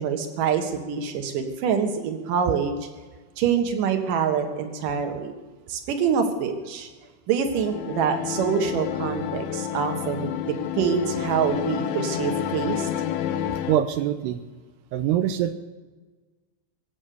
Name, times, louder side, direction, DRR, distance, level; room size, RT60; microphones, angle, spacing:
voice 1, 0.0-2.8 3.4-5.3 5.7-6.9 7.3-12.9, right 7 dB, 60° right, 5 dB, 2.6 m, -25 dB
sound 1, 7.5-13.8, left 10 dB, 80° left, 2.3 m, -30 dB
voice 2, 13.7-14.4 14.9-15.5, right 11 dB, 85° right, 8 dB, 2.4 m, -23 dB
23.0 x 8.6 x 6.7 m, 1.3 s
omnidirectional pair, 5.5 m